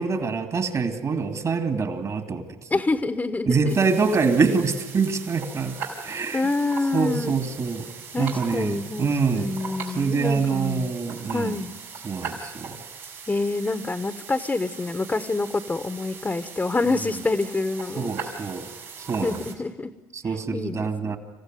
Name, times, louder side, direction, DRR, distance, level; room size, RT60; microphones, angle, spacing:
voice 1, 0.0-2.5 3.5-5.7 6.0-6.4 6.9-7.9 8.2-9.5 9.9-11.6 12.0-12.8 18.0-18.7 19.1-19.3 20.2-21.2, right 5 dB, 45° right, 6 dB, 2.7 m, -25 dB
voice 2, 2.7-3.8 6.1-7.4 8.1-11.0 11.3-11.7 13.3-18.1 19.2-19.9 20.3-21.2, left 3 dB, 20° left, 9 dB, 1.2 m, -27 dB
sound 1, 3.7-19.5, right 5 dB, 90° right, 4.3 m, -39 dB
26.5 x 15.5 x 9.5 m, 1.2 s
hypercardioid pair, 65°, 8 cm